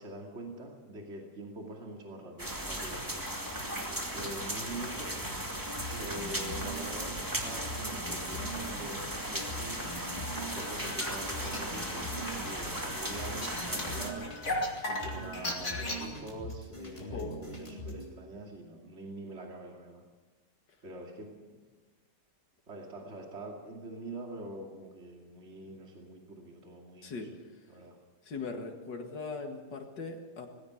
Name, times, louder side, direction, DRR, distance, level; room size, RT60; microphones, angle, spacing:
voice 1, 0.0-3.0 4.1-5.2 6.0-9.8 10.4-14.3 14.9-20.0 20.8-21.6 22.7-27.3 27.7-28.0, right 1 dB, 40° right, 1 dB, 2.8 m, -44 dB
sound 1, 2.4-14.1, right 1 dB, 10° right, 2.3 m, -36 dB
sound 2, 5.2-18.1, equal, 20° left, 3.6 m, -43 dB
sound 3, 10.6-16.1, left 2 dB, 40° left, 3.2 m, -38 dB
voice 2, 17.0-17.4 27.0-27.3 28.2-30.5, left 4 dB, 85° left, 3 dB, 2.6 m, -39 dB
19.5 x 16.5 x 8.2 m, 1.3 s
omnidirectional pair, 1.8 m